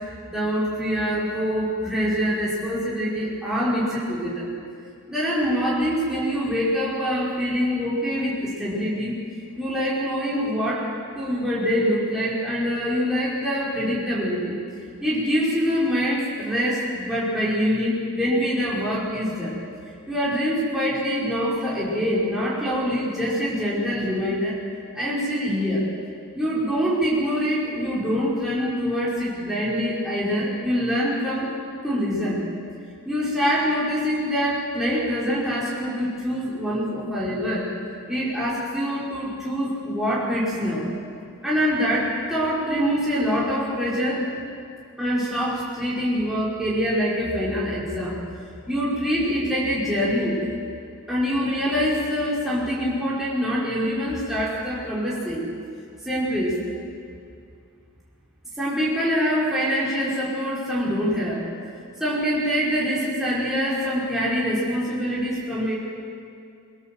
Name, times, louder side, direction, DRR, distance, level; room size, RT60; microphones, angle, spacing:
voice 1, 0.3-4.5 5.1-9.1 9.6-10.9 11.2-14.6 15.0-19.5 20.1-24.6 25.0-25.8 26.3-31.5 31.8-32.4 33.1-37.7 38.1-40.9 41.4-44.2 45.0-48.2 48.7-50.6 51.1-55.4 56.1-56.6 58.6-61.4 62.0-65.7, equal, ahead, -8 dB, 5.3 m, -24 dB
23.5 x 16.0 x 7.8 m, 2.4 s
head